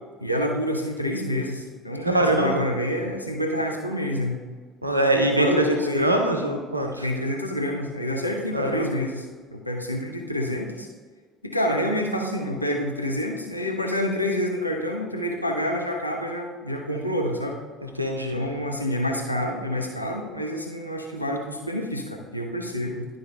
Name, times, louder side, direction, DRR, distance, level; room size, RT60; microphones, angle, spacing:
voice 1, 0.2-4.5 5.3-6.1 7.0-9.3 9.5-10.9 11.4-17.6 18.3-23.1, left 1 dB, 90° left, 1 dB, 0.7 m, -28 dB
voice 2, 2.0-2.6 4.8-7.1 8.5-9.0 18.0-18.4, right 1 dB, 85° right, 3 dB, 0.5 m, -23 dB
11.0 x 3.9 x 3.3 m, 1.5 s
figure-of-eight pair, 60°, 0 cm